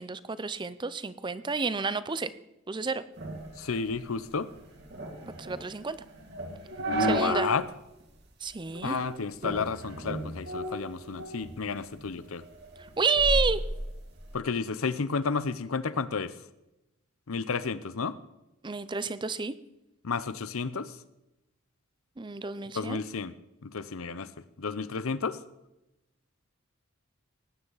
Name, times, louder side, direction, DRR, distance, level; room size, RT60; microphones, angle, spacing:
voice 1, 0.0-2.3 2.7-3.0 5.4-6.0 7.1-7.5 8.4-9.0 13.0-13.6 18.6-19.5 22.2-23.0, right 4 dB, 20° right, 15 dB, 0.5 m, -30 dB
sound 1, 3.2-7.6 8.0-8.1 8.7-9.1 9.4-11.5 11.9-14.3, right 1 dB, 55° right, 2.5 m, -34 dB
voice 2, 3.6-4.5 6.8-7.6 8.8-12.4 14.3-16.3 17.3-18.1 20.0-20.9 22.7-23.3 23.6-24.3 24.6-25.4, left 5 dB, 80° left, 15 dB, 0.7 m, -31 dB
19.0 x 9.7 x 4.0 m, 0.93 s
head